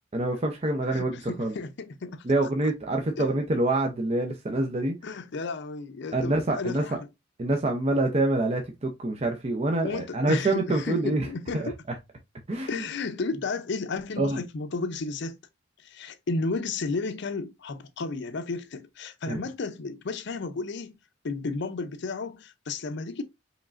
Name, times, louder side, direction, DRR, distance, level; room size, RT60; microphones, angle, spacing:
voice 1, 0.1-1.5 2.2-5.0 6.1-6.8 7.4-11.3 11.5-11.7 12.5-12.9 14.2-14.4 19.3-19.4, right 2 dB, 35° right, 0.6 m, -26 dB
voice 2, 0.9-2.2 3.2-3.3 5.0-7.0 9.8-11.7 12.7-15.4 15.8-21.0 21.2-23.2, left 3 dB, 65° left, 0.5 m, -33 dB
4.8 x 3.2 x 2.5 m
head